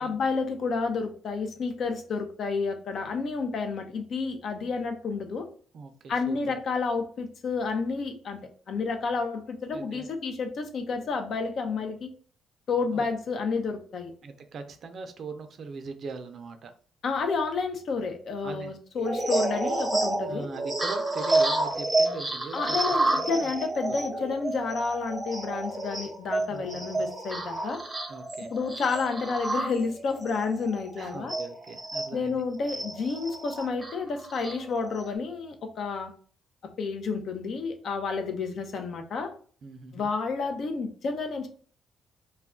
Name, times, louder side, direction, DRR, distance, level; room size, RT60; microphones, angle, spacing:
voice 1, 0.0-5.5 6.1-8.4 8.7-12.1 12.7-14.1 17.0-20.5 22.5-27.8 28.5-31.4 32.1-36.1 36.8-39.3 39.9-41.5, left 4 dB, 60° left, 6 dB, 0.5 m, -30 dB
voice 2, 5.7-6.5 9.7-10.1 12.9-13.0 14.2-16.7 18.4-18.7 20.3-22.8 23.1-23.5 23.9-24.2 26.5-26.6 26.9-27.0 28.1-28.5 31.0-32.4 39.6-40.1, right 4 dB, 55° right, 7 dB, 0.4 m, -40 dB
sound 1, 18.9-32.1 32.6-35.1, right 2 dB, 15° right, 0.6 m, -30 dB
2.3 x 2.2 x 3.6 m, 0.44 s
cardioid pair, 90°, 0 cm